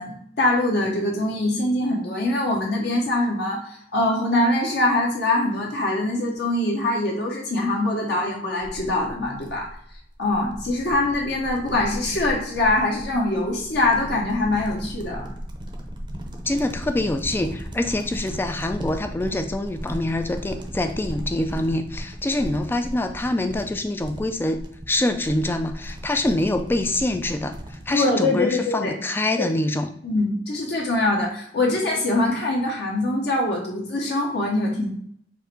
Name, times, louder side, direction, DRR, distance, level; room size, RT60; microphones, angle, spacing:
voice 1, 0.0-9.7 10.2-15.3 27.9-28.9 29.4-29.5 30.0-34.9, left 2 dB, 60° left, -2 dB, 0.9 m, -23 dB
sound 1, 8.6-27.9, equal, 25° right, 0.6 m, -36 dB
voice 2, 16.5-27.6 27.9-29.9, left 1 dB, 10° left, 7 dB, 0.3 m, -25 dB
4.7 x 2.6 x 4.3 m, 0.66 s
head